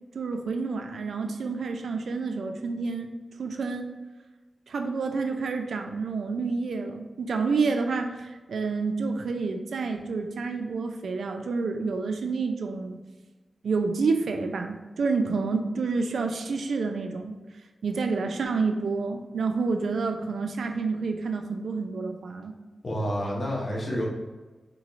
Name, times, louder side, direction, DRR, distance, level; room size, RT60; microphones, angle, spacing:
voice 1, 0.1-3.1 3.4-3.9 4.7-13.0 13.6-17.4 17.8-22.5, right 4 dB, 90° right, 5 dB, 0.3 m, -29 dB
voice 2, 22.8-24.0, equal, 55° left, -3 dB, 1.1 m, -29 dB
4.0 x 3.0 x 2.4 m, 1.3 s
cardioid pair, 60°, 0 cm